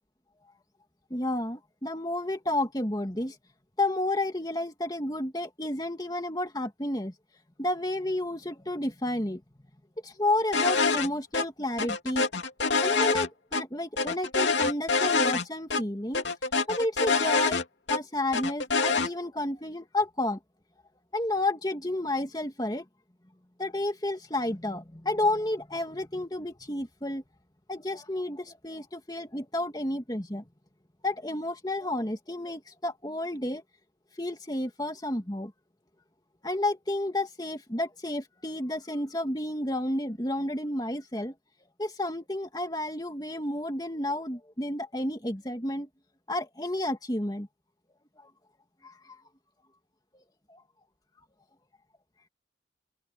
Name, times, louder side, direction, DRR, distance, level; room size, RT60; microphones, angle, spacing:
voice 1, 1.1-3.4 3.8-7.1 7.6-9.4 10.0-12.2 12.8-16.2 16.7-20.4 21.1-22.9 23.6-27.2 27.7-30.4 31.0-33.6 34.2-35.5 36.4-41.3 41.8-45.9 46.3-47.5 48.8-49.2 50.1-50.2 50.5-50.6, left 1 dB, 20° left, 2.4 m, -31 dB
sound 1, 10.5-11.1 11.3-11.4 11.8-13.6 14.0-15.4 15.7-15.8 16.1-18.0 18.3-19.1, left 4 dB, 90° left, 2.7 m, -25 dB
open air
head